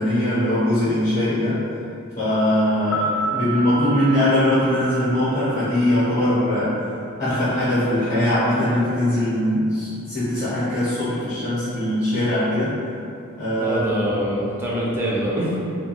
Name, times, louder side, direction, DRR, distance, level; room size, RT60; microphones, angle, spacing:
voice 1, 0.0-1.6 2.2-6.8 7.2-12.8 13.4-13.9, left 1 dB, 20° left, -14 dB, 0.7 m, -21 dB
sound 1, 2.8-6.9 7.2-7.3, right 3 dB, 85° left, 0.3 m, -31 dB
voice 2, 13.6-15.6, equal, 10° right, -6 dB, 0.3 m, -24 dB
2.2 x 2.2 x 2.9 m, 2.5 s
head